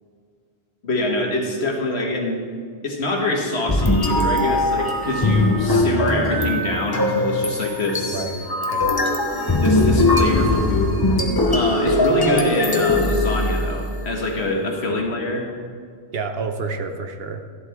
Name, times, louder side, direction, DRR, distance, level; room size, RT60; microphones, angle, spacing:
voice 1, 0.8-2.4 2.8-8.3 9.5-11.0 11.5-15.5, left 2 dB, 85° left, 0 dB, 1.9 m, -24 dB
sound 1, 3.7-14.0, left 2 dB, 25° left, 1.0 m, -20 dB
voice 2, 8.1-8.9 16.1-17.4, right 4 dB, 70° right, 6 dB, 1.1 m, -29 dB
13.0 x 11.5 x 3.6 m, 2.1 s
omnidirectional pair, 1.1 m